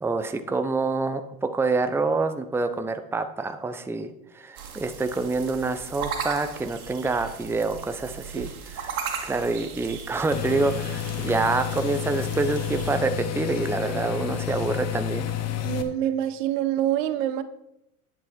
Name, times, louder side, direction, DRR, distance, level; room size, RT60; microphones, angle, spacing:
voice 1, 0.0-15.3, right 3 dB, 5° right, 8 dB, 0.8 m, -27 dB
sound 1, 4.6-13.0, right 6 dB, 80° right, 2.0 m, -37 dB
sound 2, 10.3-15.8, left 10 dB, 35° left, 1.3 m, -30 dB
voice 2, 15.6-17.4, right 11 dB, 60° right, 12 dB, 1.1 m, -26 dB
11.0 x 8.4 x 4.4 m, 0.81 s
hypercardioid pair, 90°, 43 cm